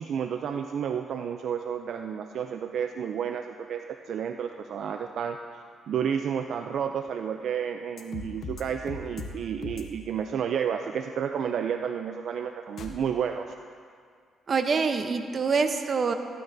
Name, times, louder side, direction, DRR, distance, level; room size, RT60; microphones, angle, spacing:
voice 1, 0.0-5.4 5.9-13.5, right 8 dB, 65° right, 6 dB, 0.4 m, -31 dB
sound 1, 8.0-8.6 8.9-9.3 9.6-9.8 12.8-12.9, left 4 dB, 60° left, 1.0 m, -38 dB
voice 2, 14.5-16.1, right 5 dB, 45° right, 7 dB, 0.8 m, -25 dB
13.5 x 12.0 x 2.7 m, 2.1 s
cardioid pair, 90°, 0 cm